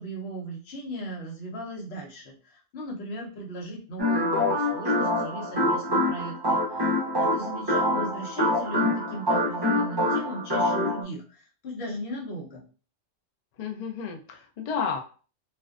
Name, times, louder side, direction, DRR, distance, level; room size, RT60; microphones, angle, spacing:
voice 1, 0.0-6.9 7.2-12.6, right 1 dB, 60° left, -1 dB, 0.9 m, -37 dB
sound 1, 4.0-11.0, left 1 dB, 30° right, 0.5 m, -25 dB
voice 2, 13.6-15.0, left 6 dB, 80° left, 2 dB, 0.3 m, -31 dB
2.5 x 2.1 x 2.3 m, 0.37 s
omnidirectional pair, 1.2 m